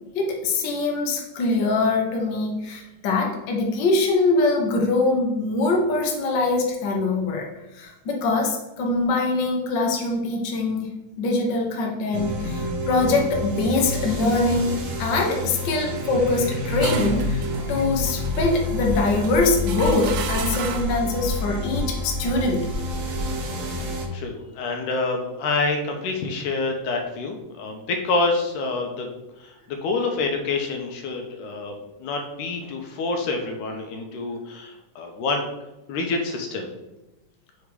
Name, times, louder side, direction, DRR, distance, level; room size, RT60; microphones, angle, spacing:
voice 1, 0.1-7.4 7.7-22.7, left 3 dB, 65° left, 0 dB, 1.1 m, -23 dB
sound 1, 12.1-24.1, left 1 dB, 60° right, 1.8 m, -28 dB
sound 2, 16.4-21.1, right 7 dB, 85° right, 2.2 m, -35 dB
sound 3, 18.5-23.3, equal, 30° left, 1.7 m, -34 dB
voice 2, 24.1-29.1 29.4-31.7 32.0-35.4 35.9-36.7, left 3 dB, 80° left, 3 dB, 2.3 m, -27 dB
6.6 x 3.5 x 4.8 m, 0.99 s
omnidirectional pair, 3.7 m